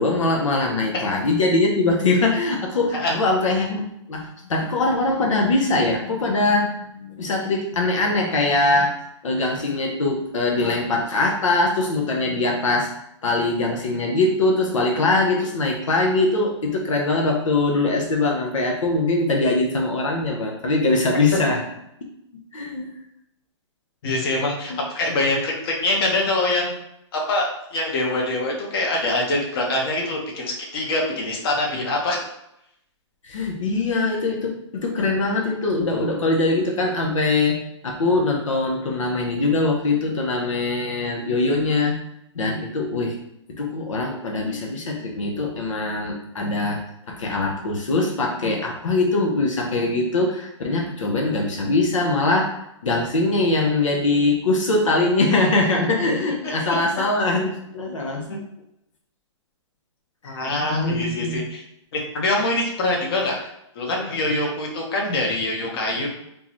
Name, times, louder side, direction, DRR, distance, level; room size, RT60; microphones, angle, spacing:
voice 1, 0.0-3.8 4.1-9.0 9.2-12.9 13.2-21.6 22.5-22.9 24.7-24.8 33.2-37.6 37.8-42.0 42.3-43.2 43.6-46.8 47.1-52.6 52.8-58.4 60.2-61.4, left 2 dB, 90° left, 0 dB, 0.8 m, -22 dB
voice 2, 24.0-26.8 27.1-32.2 58.3-58.4 60.2-61.6 61.9-63.4 63.7-66.1, left 2 dB, 50° left, -1 dB, 1.1 m, -24 dB
3.7 x 2.7 x 3.0 m, 0.80 s
hypercardioid pair, 150°, 16 cm